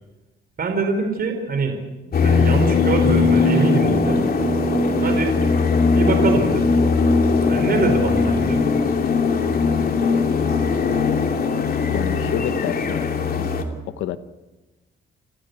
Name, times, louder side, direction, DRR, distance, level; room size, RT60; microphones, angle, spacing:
voice 1, 0.6-1.8 2.2-4.2 5.0-5.4 5.9-6.7 7.5-8.6, right 4 dB, 50° right, 6 dB, 4.6 m, -24 dB
sound 1, 2.1-13.6, left 4 dB, 50° left, 2.9 m, -19 dB
voice 2, 11.9-13.5 13.9-14.2, left 11 dB, 90° left, 12 dB, 1.0 m, -29 dB
29.5 x 13.5 x 8.2 m, 1.1 s
cardioid pair, 90°, 20 cm